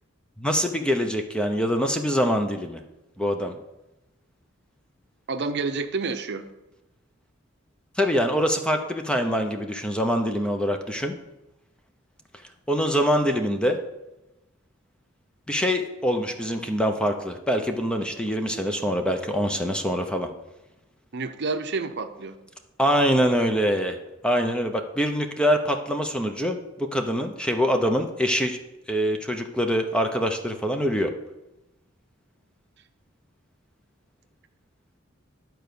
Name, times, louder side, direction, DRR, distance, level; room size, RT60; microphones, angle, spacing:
voice 1, 0.4-2.8 3.2-3.5 8.0-11.2 12.7-13.8 15.5-20.3 22.8-24.0 24.2-28.6 28.9-31.1, equal, 5° left, 5 dB, 0.8 m, -24 dB
voice 2, 5.3-6.4 21.1-22.4, right 4 dB, 55° right, 8 dB, 0.7 m, -29 dB
11.5 x 4.6 x 6.9 m, 0.97 s
head